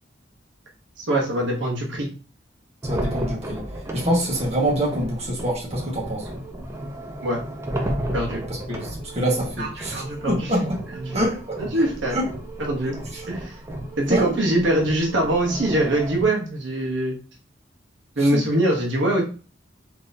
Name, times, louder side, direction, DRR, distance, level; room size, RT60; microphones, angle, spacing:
voice 1, 1.0-2.1 7.2-7.4 8.1-8.4 9.6-10.7 11.0-11.2 11.6-12.2 12.6-12.9 13.3-17.2 18.2-19.2, right 1 dB, 80° right, 0.9 m, -23 dB
sound 1, 2.8-16.2, right 1 dB, 15° right, 0.6 m, -33 dB
voice 2, 2.8-3.6 3.9-6.3 8.5-10.8 11.1-11.6 12.1-12.3 13.1-13.3 14.1-14.6 18.2-18.4, equal, 35° right, 1.2 m, -25 dB
3.8 x 2.8 x 2.6 m
head